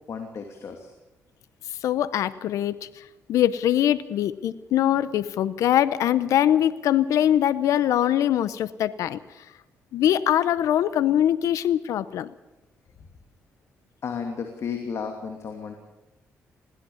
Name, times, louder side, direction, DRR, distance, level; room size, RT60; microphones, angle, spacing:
voice 1, 0.1-0.9 14.0-15.7, left 6 dB, 60° left, 4 dB, 2.7 m, -33 dB
voice 2, 1.8-3.0 3.3-9.2 9.9-12.3, left 11 dB, 85° left, 16 dB, 0.8 m, -22 dB
21.5 x 16.5 x 7.2 m, 1.0 s
cardioid pair, 80°, 5 cm